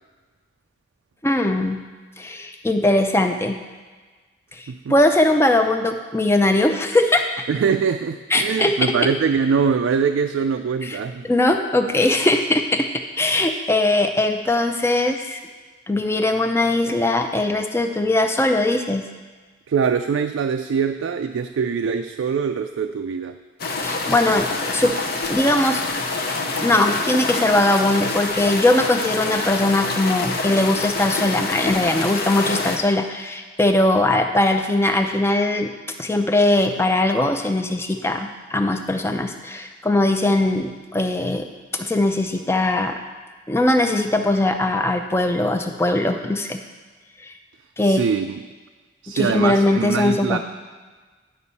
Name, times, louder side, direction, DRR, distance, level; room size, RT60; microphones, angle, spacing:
voice 1, 1.2-1.8 2.2-3.6 4.5-7.3 8.3-8.9 10.8-11.0 11.2-12.9 13.2-15.4 15.9-19.1 23.8-24.9 25.3-25.8 26.6-35.7 36.0-41.5 41.7-43.0 43.5-46.6 47.2-47.3 47.8-48.0 49.1-50.4, left 2 dB, 15° left, 6 dB, 0.4 m, -20 dB
voice 2, 7.5-11.3 16.9-17.0 19.7-23.4 47.8-48.4 49.0-50.4, right 6 dB, 85° right, 6 dB, 0.3 m, -23 dB
sound 1, 23.6-32.8, left 3 dB, 50° left, 0.7 m, -26 dB
10.0 x 5.4 x 4.1 m, 1.4 s
head